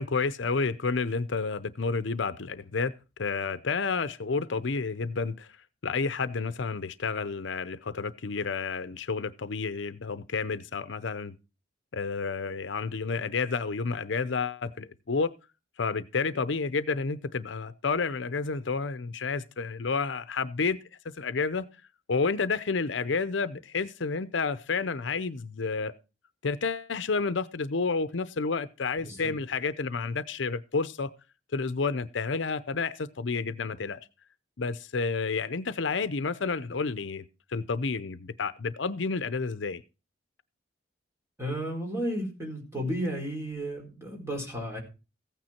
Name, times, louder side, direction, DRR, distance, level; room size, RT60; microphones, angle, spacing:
voice 1, 0.0-2.9 3.2-5.5 5.8-11.4 11.9-15.3 15.8-20.8 21.0-21.6 22.1-25.9 26.4-31.1 31.5-34.0 34.6-37.2 37.5-39.8, left 4 dB, 70° left, 0.7 m, -30 dB
voice 2, 41.4-44.8, equal, 15° right, 4.3 m, -33 dB
15.0 x 9.3 x 4.4 m
head